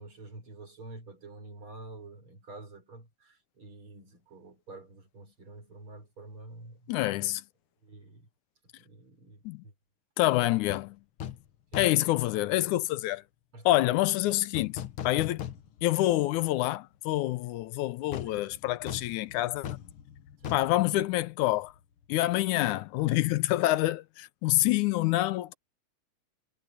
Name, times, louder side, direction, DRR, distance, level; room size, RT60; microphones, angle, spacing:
voice 1, 0.0-6.9 7.8-8.3 8.8-9.7 11.7-11.9 13.5-14.0 18.3-18.4 20.4-20.6, right 2 dB, 40° right, 5.9 m, -48 dB
voice 2, 6.9-7.4 9.5-9.6 10.2-11.0 11.8-13.2 13.7-15.5 15.8-19.8 20.5-21.7 22.1-25.5, left 16 dB, 85° left, 2.1 m, -27 dB
sound 1, 10.7-10.9 11.2-11.5 11.7-12.1 14.5-16.0 16.4-16.5 18.1-21.8 22.0-22.2, left 10 dB, 55° left, 1.6 m, -40 dB
omnidirectional pair, 3.5 m